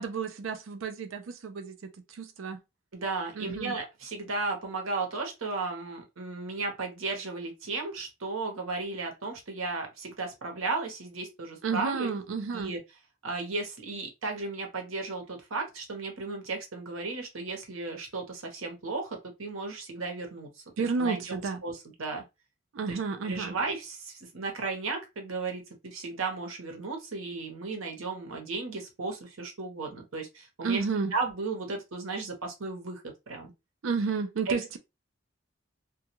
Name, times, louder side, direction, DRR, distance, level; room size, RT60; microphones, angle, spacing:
voice 1, 0.0-2.6 3.4-3.7 11.6-12.7 20.8-21.6 22.7-23.5 30.6-31.1 33.8-34.8, right 4 dB, 75° right, 0.5 m, -31 dB
voice 2, 2.9-12.1 12.5-12.8 13.2-20.5 21.0-22.2 22.9-23.0 23.2-30.8 31.1-33.5 34.5-34.8, right 3 dB, 90° right, 0.9 m, -35 dB
2.3 x 2.2 x 2.9 m
head